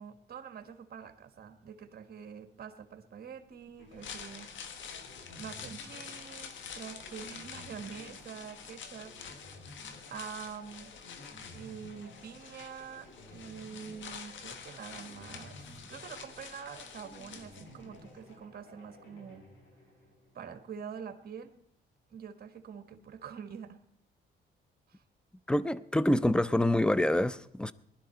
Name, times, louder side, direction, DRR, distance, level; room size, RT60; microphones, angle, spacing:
voice 1, 0.0-4.5 5.3-9.2 10.1-10.9 11.5-15.6 15.9-19.4 20.3-21.5 22.1-23.8 24.9-25.0, right 7 dB, 50° right, 1.6 m, -45 dB
sound 1, 3.8-20.7, left 1 dB, 90° left, 7.6 m, -54 dB
sound 2, 3.8-18.0 18.3-18.4, left 7 dB, 70° left, 1.5 m, -47 dB
voice 2, 25.5-27.7, left 1 dB, 5° left, 0.5 m, -26 dB
20.0 x 11.5 x 4.5 m
cardioid pair, 90°, 20 cm